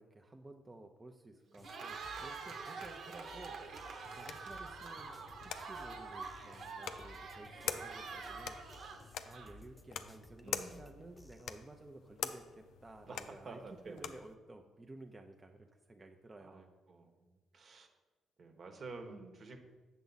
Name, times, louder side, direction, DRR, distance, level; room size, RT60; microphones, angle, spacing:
voice 1, 0.0-5.1 5.4-8.8 9.2-16.7, right 2 dB, 20° right, 3 dB, 0.6 m, -54 dB
Cheering, 1.5-9.8, right 4 dB, 70° right, 1.3 m, -46 dB
sound 1, 1.6-11.5, left 2 dB, 10° left, 0.8 m, -59 dB
sound 2, 3.6-14.3, left 8 dB, 80° left, 0.5 m, -46 dB
voice 2, 10.4-10.9 13.1-14.1 16.4-17.2 17.5-17.9 18.4-19.6, right 3 dB, 50° right, 5 dB, 1.2 m, -50 dB
8.1 x 7.0 x 4.0 m, 1.3 s
cardioid pair, 90°, 0 cm